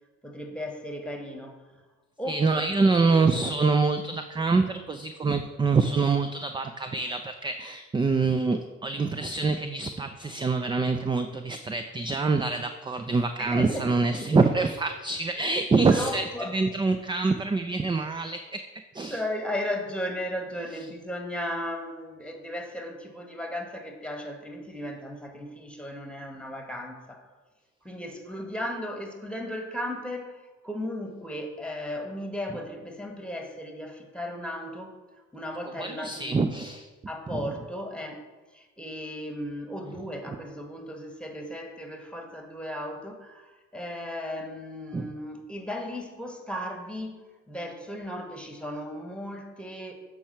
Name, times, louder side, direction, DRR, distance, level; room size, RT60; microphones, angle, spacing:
voice 1, 0.2-1.6 2.2-2.6 13.4-13.9 14.1-14.5 15.3-15.5 15.9-16.5 19.0-27.3 27.8-36.4 37.1-38.2 38.5-49.9, left 1 dB, 5° left, 4 dB, 1.3 m, -36 dB
voice 2, 2.3-18.6 18.9-19.2 35.8-36.9 37.3-37.4 44.9-45.1, right 4 dB, 15° right, 7 dB, 0.3 m, -25 dB
7.2 x 4.6 x 4.3 m, 1.2 s
hypercardioid pair, 50°, 36 cm